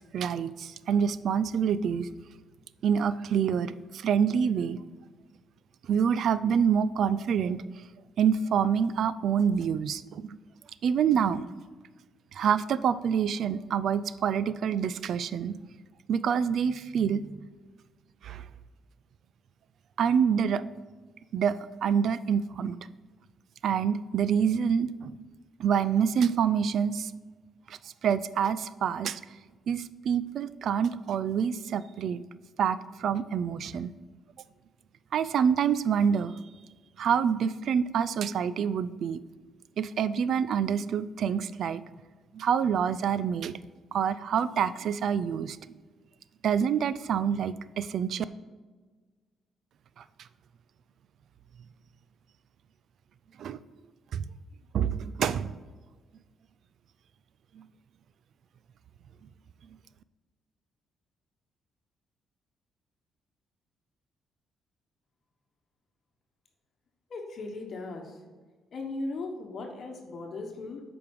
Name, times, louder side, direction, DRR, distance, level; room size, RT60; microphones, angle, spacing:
voice 1, 0.0-2.1 2.8-4.8 5.8-7.8 8.2-10.3 10.8-11.4 12.3-15.6 16.1-17.5 18.2-18.5 20.0-20.6 21.3-22.8 23.6-25.1 25.6-27.1 27.7-29.2 29.7-32.2 32.6-33.9 35.1-36.4 37.0-39.2 39.8-41.8 42.3-43.6 43.9-45.6 46.4-48.2 50.0-50.3 53.4-53.6 54.1-54.3 54.7-55.5 57.5-57.7, right 7 dB, 65° right, 16 dB, 0.4 m, -27 dB
voice 2, 67.1-68.2 68.7-70.8, left 2 dB, 55° left, 2 dB, 1.3 m, -37 dB
8.4 x 5.2 x 4.7 m, 1.4 s
cardioid pair, 90°, 0 cm